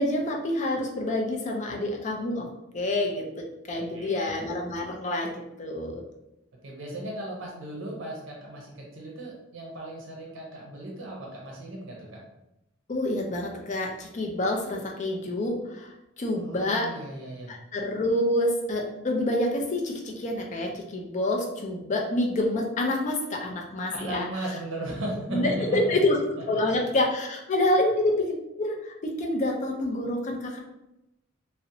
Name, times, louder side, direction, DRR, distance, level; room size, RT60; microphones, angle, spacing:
voice 1, 0.0-2.5 2.7-5.3 5.6-6.0 12.9-15.9 16.2-16.9 17.5-24.3 25.3-26.2 26.4-28.3 28.6-30.6, left 1 dB, 40° left, 1 dB, 0.4 m, -27 dB
voice 2, 3.7-4.4 6.6-12.2 16.3-17.5 24.0-26.1, right 1 dB, 70° right, -2 dB, 0.6 m, -36 dB
2.7 x 2.0 x 2.6 m, 0.88 s
head